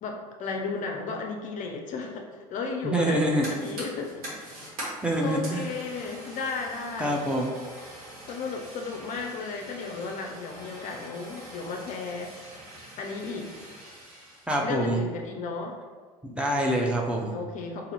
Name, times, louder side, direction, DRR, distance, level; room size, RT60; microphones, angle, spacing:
voice 1, 0.0-4.2 5.2-7.2 8.2-12.3 13.0-13.5 14.6-15.8 17.3-17.9, left 4 dB, 45° left, 2 dB, 0.5 m, -34 dB
voice 2, 2.8-3.5 5.0-5.6 7.0-7.5 14.5-15.0 16.2-17.4, right 1 dB, 5° right, -2 dB, 0.6 m, -26 dB
Fire, 3.0-14.6, right 1 dB, 80° right, 1.5 m, -43 dB
2.7 x 2.6 x 4.2 m, 1.5 s
hypercardioid pair, 75°, 19 cm